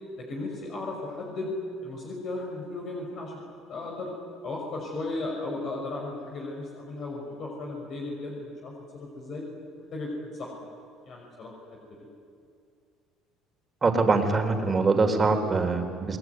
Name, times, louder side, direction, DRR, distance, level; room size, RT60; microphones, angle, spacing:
voice 1, 0.2-1.5 1.8-3.4 3.7-4.1 4.4-9.4 9.9-10.5 11.1-11.5, left 2 dB, 50° left, 0 dB, 6.2 m, -35 dB
voice 2, 13.8-16.2, right 3 dB, 25° right, 6 dB, 4.0 m, -23 dB
29.5 x 21.0 x 9.7 m, 2.4 s
cardioid pair, 115°, 0 cm